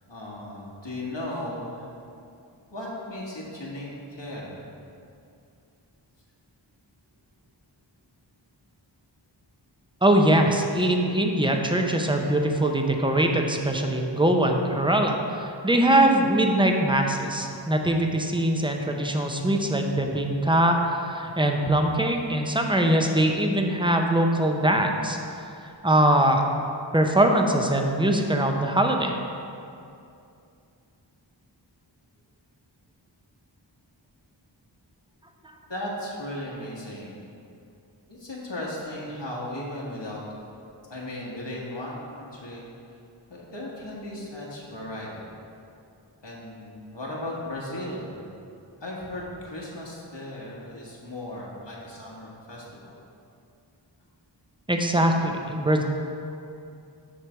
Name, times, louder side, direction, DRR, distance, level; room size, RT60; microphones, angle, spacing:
voice 1, 0.1-1.9 2.7-4.6 35.7-37.2 38.1-40.2 40.9-42.7 43.3-45.3 46.2-48.1 48.8-52.9, left 1 dB, 70° left, -5 dB, 1.4 m, -36 dB
voice 2, 10.0-25.5 25.8-26.4 26.9-29.2 54.7-55.8, right 1 dB, 10° right, 2 dB, 0.6 m, -22 dB
7.4 x 3.3 x 6.1 m, 2.6 s
wide cardioid pair, 50°, 45 cm